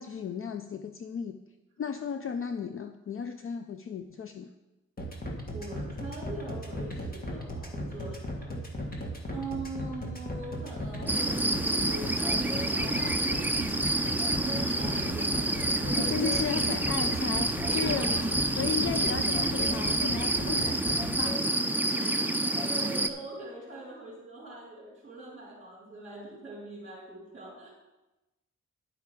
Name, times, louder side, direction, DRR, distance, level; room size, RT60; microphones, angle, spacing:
voice 1, 0.0-1.4 1.8-4.5 16.0-18.2 18.6-21.4, left 6 dB, 45° left, 8 dB, 0.5 m, -34 dB
sound 1, 5.0-21.1, left 1 dB, 30° left, 1.7 m, -36 dB
voice 2, 5.5-9.0 9.3-13.2 14.0-16.4 17.6-18.6 21.9-27.7, right 2 dB, 25° right, -8 dB, 3.9 m, -43 dB
sound 2, 11.1-23.1, right 2 dB, 5° right, 0.5 m, -28 dB
11.0 x 8.2 x 5.0 m, 1.0 s
wide cardioid pair, 145°, 31 cm